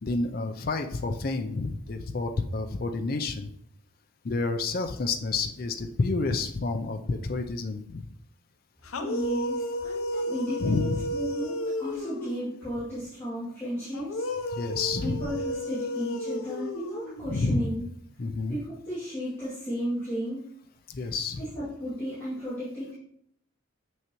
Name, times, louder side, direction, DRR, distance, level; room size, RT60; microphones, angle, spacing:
voice 1, 0.0-3.5 4.2-8.1 10.6-11.0 14.5-15.2 17.3-17.7 18.2-18.6 20.9-21.4, left 3 dB, 45° left, 6 dB, 0.4 m, -29 dB
sound 1, 8.8-12.6 13.9-17.5, left 1 dB, 85° left, 0.6 m, -33 dB
voice 2, 9.0-14.2 15.0-17.9 18.5-20.4 21.4-23.0, equal, 10° left, -14 dB, 2.5 m, -34 dB
6.8 x 6.2 x 3.0 m, 0.70 s
head